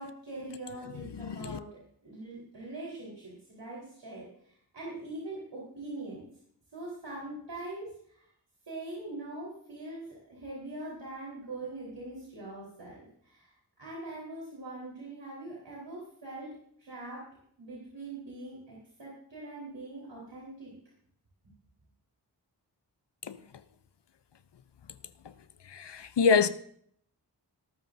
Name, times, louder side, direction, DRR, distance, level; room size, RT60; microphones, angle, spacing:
voice 1, 0.0-6.2 6.7-8.3 8.6-16.5 16.8-17.3 17.6-20.7, right 2 dB, 85° right, 4.2 m, -42 dB
voice 2, 1.2-1.6 23.3-23.4 25.7-26.5, left 5 dB, 75° left, 0.7 m, -26 dB
18.5 x 13.0 x 2.7 m
wide cardioid pair, 55°, 42 cm